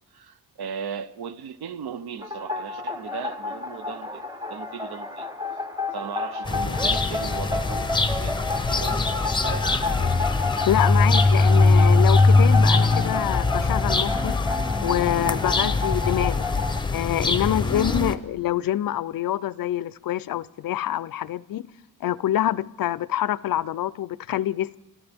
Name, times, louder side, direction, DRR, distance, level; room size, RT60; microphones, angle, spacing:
voice 1, 0.1-4.2 4.5-5.3 5.9-7.9 8.2-10.1, right 7 dB, 80° right, 0.8 m, -37 dB
sound 1, 2.2-16.8, left 4 dB, 10° right, 0.9 m, -31 dB
sound 2, 6.4-18.2, left 3 dB, 10° left, 0.6 m, -21 dB
voice 2, 10.7-16.5 16.9-21.6 22.0-24.8, left 12 dB, 65° left, 0.5 m, -26 dB
26.0 x 14.0 x 3.5 m
wide cardioid pair, 160°, 38 cm